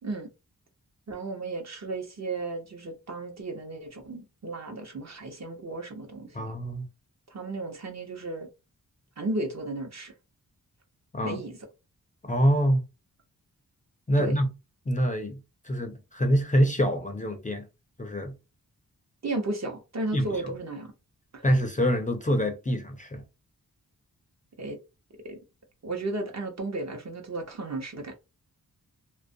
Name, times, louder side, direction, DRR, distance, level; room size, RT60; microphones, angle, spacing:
voice 1, 1.1-6.5 7.3-8.5 9.2-10.1 11.2-11.6 14.2-14.3 19.2-20.9 21.3-21.4 24.6-24.8 25.2-25.4 25.8-28.1, right 2 dB, 45° right, 0.8 m, -34 dB
voice 2, 6.3-6.8 11.1-11.4 12.2-12.8 14.1-14.5 14.9-17.7 18.0-18.4 20.1-20.3 21.4-23.2, equal, 20° left, 0.5 m, -25 dB
2.3 x 2.1 x 2.6 m
cardioid pair, 65°, 36 cm